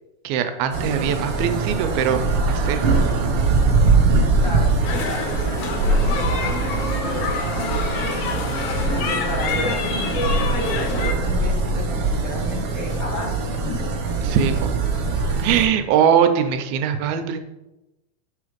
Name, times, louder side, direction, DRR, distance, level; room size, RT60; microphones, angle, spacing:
voice 1, 0.2-2.8 14.2-14.7 15.4-17.4, right 8 dB, 90° right, 8 dB, 2.5 m, -21 dB
sound 1, 0.7-15.7, right 3 dB, 70° right, 1.3 m, -22 dB
voice 2, 4.4-4.8 5.0-5.3 5.9-7.3 7.5-8.0 8.9-13.3 13.6-13.8, left 2 dB, 75° left, -3 dB, 1.2 m, -33 dB
sound 2, 4.8-11.1, left 5 dB, 90° left, 2.8 m, -28 dB
7.8 x 3.8 x 5.1 m, 0.99 s
omnidirectional pair, 4.1 m